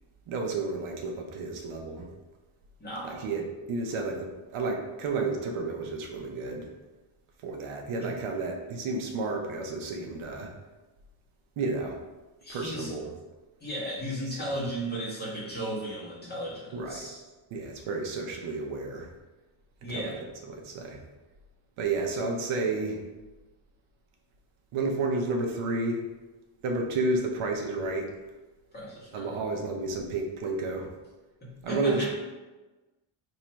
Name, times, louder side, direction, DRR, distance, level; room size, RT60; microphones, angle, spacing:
voice 1, 0.3-2.1 3.0-6.7 7.4-10.5 11.6-12.0 12.5-13.1 16.7-17.1 17.5-19.1 19.9-20.1 20.5-21.0 21.8-23.0 24.7-26.0 26.6-28.1 29.1-30.9 31.6-32.1, right 3 dB, 85° right, 1 dB, 0.8 m, -31 dB
voice 2, 2.8-3.3 8.0-8.1 12.4-12.9 13.6-17.2 19.8-20.2 28.7-29.4 31.4-32.1, right 1 dB, 20° left, -8 dB, 1.4 m, -35 dB
3.1 x 2.8 x 4.5 m, 1.2 s
cardioid pair, 150°, 49 cm